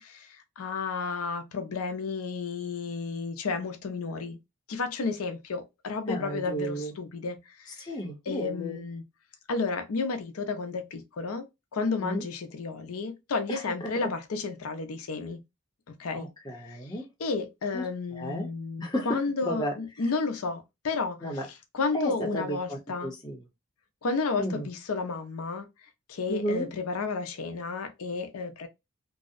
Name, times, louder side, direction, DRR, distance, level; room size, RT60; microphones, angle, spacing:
voice 1, 0.0-4.4 4.7-7.9 8.3-9.0 9.5-11.5 11.7-15.4 15.9-16.3 17.2-21.2 21.7-23.1 24.0-25.7 26.1-28.7, left 4 dB, 90° left, 0.5 m, -32 dB
voice 2, 6.1-6.9 7.8-8.8 12.0-12.2 13.5-13.9 16.1-17.1 17.7-17.9 18.1-18.5 18.8-19.8 21.2-21.5 21.9-23.4 24.4-24.7 26.3-26.7, equal, 20° left, 0.6 m, -33 dB
2.6 x 2.0 x 2.4 m
head